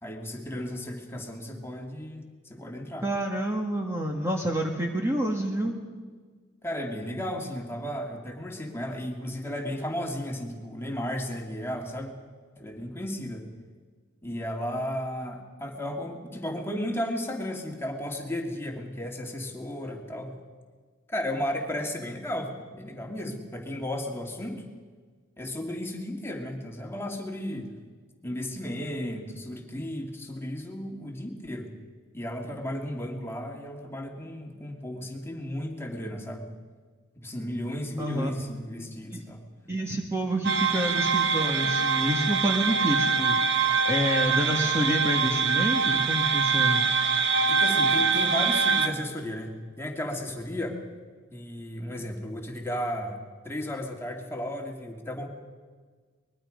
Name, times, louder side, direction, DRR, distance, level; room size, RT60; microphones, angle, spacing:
voice 1, 0.0-3.1 6.6-12.2 12.6-13.5 14.2-20.3 21.1-24.7 25.4-27.7 28.2-31.7 32.1-36.5 37.1-39.5 47.5-50.8 51.3-53.2 53.4-55.3, left 1 dB, 15° left, 1 dB, 2.5 m, -34 dB
voice 2, 3.0-5.7 38.0-38.3 39.1-39.2 39.7-43.4 43.9-46.8, equal, 15° right, 1 dB, 1.8 m, -28 dB
sound 1, 40.4-48.9, right 5 dB, 60° right, 1.4 m, -24 dB
23.5 x 21.0 x 5.2 m, 1.5 s
head